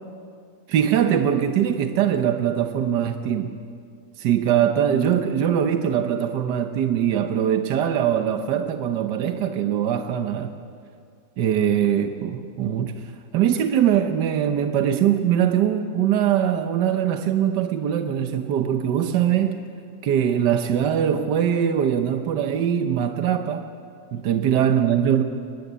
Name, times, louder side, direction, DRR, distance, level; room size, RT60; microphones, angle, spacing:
voice 1, 0.7-3.6 4.2-10.6 11.4-13.0 13.3-19.6 20.0-23.7 24.1-25.2, right 9 dB, 80° right, 7 dB, 1.5 m, -22 dB
22.5 x 20.0 x 8.2 m, 2.3 s
omnidirectional pair, 1.8 m